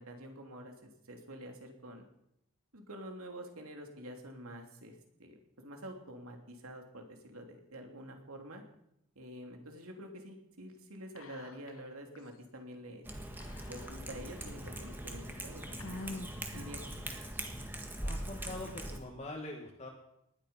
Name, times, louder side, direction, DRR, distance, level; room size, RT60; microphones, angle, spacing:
voice 1, 0.0-2.0 2.7-8.6 9.1-13.1 13.7-16.2 16.5-17.0, equal, 75° right, 3 dB, 3.1 m, -48 dB
Whispering, 11.2-11.9 12.2-12.3 13.4-14.3 14.9-15.0 15.8-17.0, left 2 dB, 70° left, 1.3 m, -46 dB
Cat, 13.0-19.0, right 1 dB, 10° right, 1.5 m, -42 dB
voice 2, 18.0-19.9, left 2 dB, 30° left, -1 dB, 1.9 m, -43 dB
19.5 x 12.5 x 5.6 m, 0.78 s
head